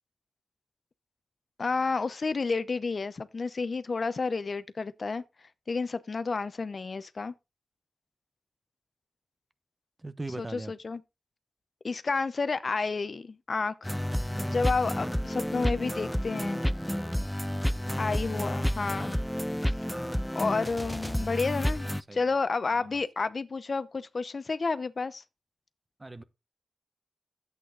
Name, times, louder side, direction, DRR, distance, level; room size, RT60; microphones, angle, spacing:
voice 1, 1.6-5.2 5.7-7.3 10.4-11.0 11.8-13.9 14.5-16.6 18.0-19.2 20.3-25.2, left 4 dB, 55° left, 0.8 m, -30 dB
voice 2, 10.0-10.7 21.8-22.2 22.7-23.0 26.0-26.2, right 2 dB, 25° right, 1.1 m, -41 dB
sound 1, 13.8-22.0, equal, 5° left, 0.5 m, -30 dB
11.5 x 8.4 x 3.9 m
wide cardioid pair, 70°, 0 cm